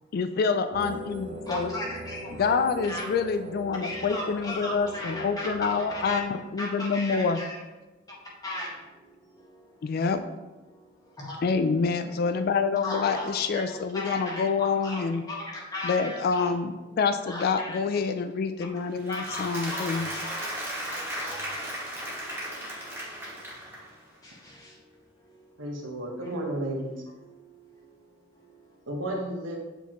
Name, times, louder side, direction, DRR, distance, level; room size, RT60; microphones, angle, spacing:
voice 1, 0.1-1.7 2.4-7.4 9.8-10.2 11.4-15.2 15.8-20.1, left 5 dB, 50° left, 10 dB, 0.3 m, -27 dB
sound 1, 0.7-6.2, equal, 40° right, 0.7 m, -40 dB
voice 2, 1.5-2.6 2.9-3.1 3.8-6.2 6.6-7.6 8.4-10.0 10.7-11.4 12.8-13.6 13.9-16.5 17.3-17.8 19.1-20.5 20.9-21.4 22.0-23.4 24.2-24.9 25.2-25.6 27.2-28.0 28.3-28.8, left 1 dB, 20° left, -5 dB, 1.6 m, -38 dB
Applause, 18.9-24.0, equal, 15° right, 1.9 m, -35 dB
voice 3, 25.6-26.9 28.9-29.6, right 1 dB, 70° right, 0 dB, 1.2 m, -32 dB
8.1 x 4.2 x 3.0 m, 1.1 s
head